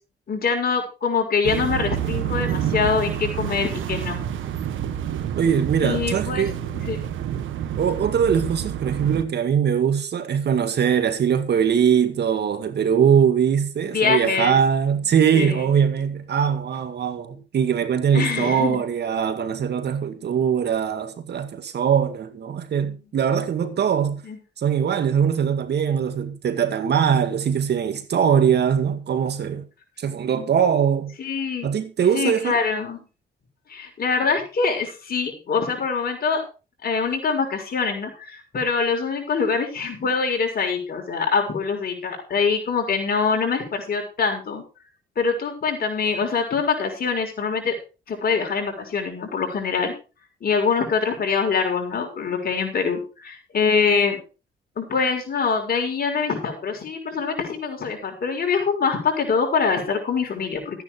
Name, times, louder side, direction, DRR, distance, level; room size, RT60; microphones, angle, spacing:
voice 1, 0.3-4.2 5.8-6.5 6.9-7.0 13.9-14.6 15.3-15.7 18.1-18.8 22.8-23.0 24.2-24.4 31.2-31.7 32.1-33.0 33.7-36.4 36.8-44.6 45.2-47.8 48.1-49.9 50.4-54.2 54.8-60.8, left 5 dB, 50° left, 6.0 m, -24 dB
sound 1, 1.4-9.2, right 10 dB, 75° right, 1.7 m, -28 dB
voice 2, 5.3-6.6 7.8-24.2 24.6-29.7 30.0-31.1 31.6-32.6, right 7 dB, 60° right, 2.0 m, -21 dB
14.5 x 9.8 x 4.6 m
cardioid pair, 90°, 20 cm